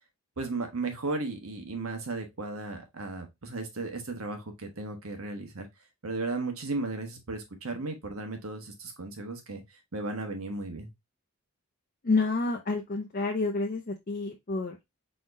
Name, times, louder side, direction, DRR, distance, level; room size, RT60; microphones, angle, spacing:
voice 1, 0.4-5.7 6.0-10.9, right 3 dB, 80° right, 1.3 m, -35 dB
voice 2, 12.0-14.8, left 3 dB, 40° left, 0.6 m, -29 dB
4.3 x 3.7 x 2.6 m
head